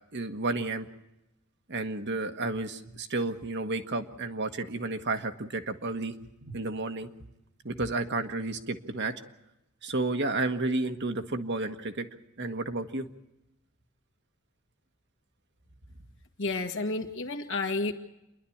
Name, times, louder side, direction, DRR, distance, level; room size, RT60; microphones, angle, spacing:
voice 1, 0.1-0.9 1.7-6.1 6.4-7.1 7.6-9.1 9.8-12.1 12.4-13.1, right 2 dB, 55° right, 7 dB, 1.4 m, -31 dB
voice 2, 16.4-17.9, left 3 dB, 60° left, 6 dB, 1.9 m, -31 dB
28.5 x 11.5 x 8.6 m, 0.91 s
head